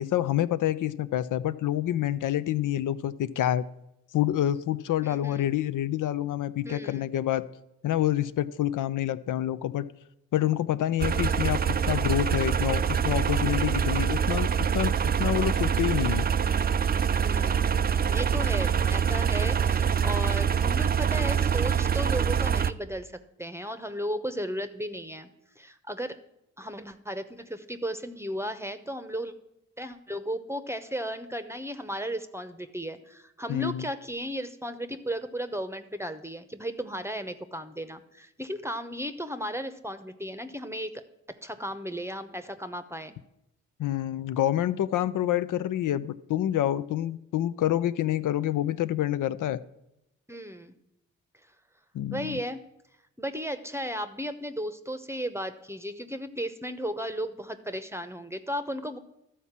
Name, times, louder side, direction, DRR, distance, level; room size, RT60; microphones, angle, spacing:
voice 1, 0.0-3.6 4.1-7.4 7.8-9.9 10.3-14.5 14.7-14.9 15.2-16.3 33.5-33.9 43.8-49.6 51.9-52.4, left 12 dB, 70° left, 15 dB, 0.5 m, -27 dB
voice 2, 5.0-5.5 6.6-7.0 17.2-17.8 18.1-25.3 25.6-26.2 26.6-29.3 29.8-41.0 41.3-43.2 50.3-50.7 52.1-52.6 53.2-59.0, equal, 10° right, 10 dB, 0.8 m, -35 dB
sound 1, 11.0-22.7, right 7 dB, 30° right, 0.4 m, -25 dB
12.5 x 4.2 x 7.3 m, 0.87 s
supercardioid pair, 45°, 33 cm